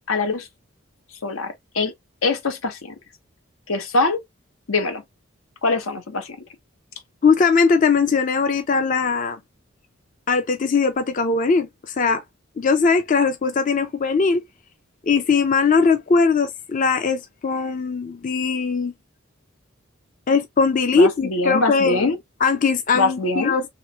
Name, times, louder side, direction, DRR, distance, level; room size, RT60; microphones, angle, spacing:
voice 1, 0.1-0.5 1.2-1.9 2.2-2.9 3.7-4.2 4.7-5.0 5.6-6.4 20.9-22.2 22.9-23.5, left 3 dB, 80° left, 0.9 m, -23 dB
voice 2, 7.2-9.4 10.3-12.2 12.6-14.4 15.1-18.9 20.3-22.1 22.4-23.7, left 4 dB, 40° left, 0.4 m, -20 dB
3.1 x 3.1 x 2.7 m
head